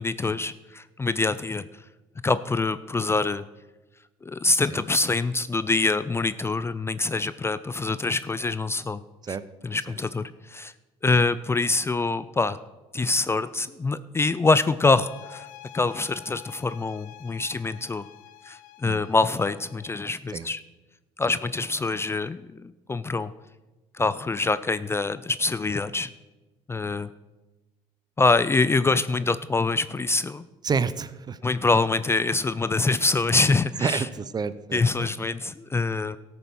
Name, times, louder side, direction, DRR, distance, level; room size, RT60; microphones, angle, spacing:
voice 1, 0.0-1.7 2.2-3.5 4.2-9.0 9.3-9.4 9.6-10.7 11.0-12.6 12.9-15.5 15.7-18.1 18.4-20.6 21.2-23.3 23.9-26.1 26.7-27.1 28.2-30.4 31.4-34.1 34.7-36.2, left 3 dB, 20° left, 15 dB, 0.4 m, -25 dB
sound 1, 14.8-20.0, left 14 dB, 75° left, 0.6 m, -47 dB
voice 2, 30.6-31.4 33.8-35.1, right 5 dB, 30° right, 16 dB, 0.6 m, -29 dB
13.5 x 6.9 x 6.2 m, 1.1 s
supercardioid pair, 85°, 14 cm